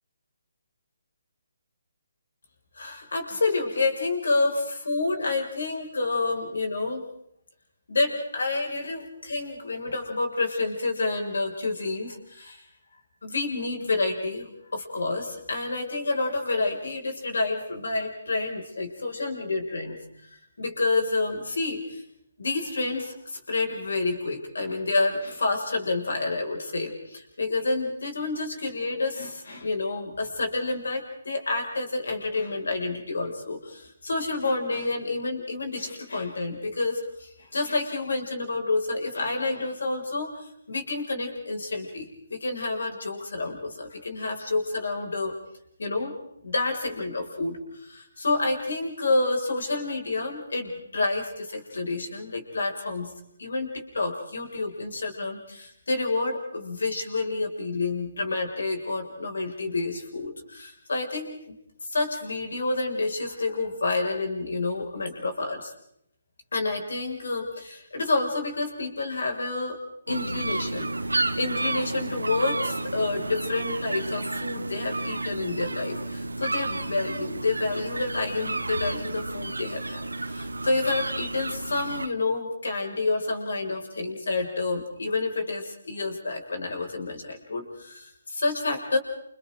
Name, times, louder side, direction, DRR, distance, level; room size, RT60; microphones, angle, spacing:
voice 1, 2.8-7.1 7.9-12.6 13.2-20.0 20.6-22.0 22.4-45.3 45.8-46.1 46.4-53.1 53.4-61.5 61.9-65.7 66.5-69.8 70.1-70.9 71.4-89.0, left 3 dB, 75° left, 2 dB, 6.4 m, -29 dB
sound 1, 70.1-82.1, right 2 dB, 90° right, 1.3 m, -31 dB
29.5 x 29.5 x 4.0 m, 0.73 s
figure-of-eight pair, 145°, 0 cm